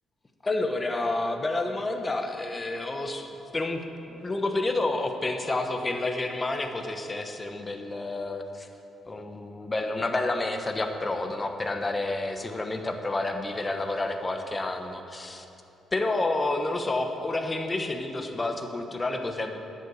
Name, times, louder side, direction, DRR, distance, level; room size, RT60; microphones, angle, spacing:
voice 1, 0.4-8.7 9.0-15.4 15.9-19.6, left 2 dB, 25° left, 5 dB, 1.2 m, -29 dB
10.5 x 8.6 x 8.3 m, 2.9 s
cardioid pair, 90°, 0 cm